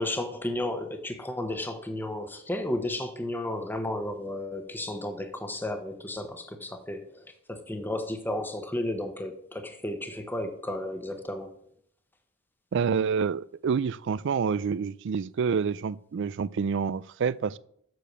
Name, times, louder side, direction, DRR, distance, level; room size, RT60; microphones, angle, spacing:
voice 1, 0.0-11.5, left 1 dB, 10° left, 1.0 m, -33 dB
voice 2, 12.7-17.6, right 6 dB, 60° right, 0.4 m, -28 dB
7.8 x 6.6 x 6.7 m
head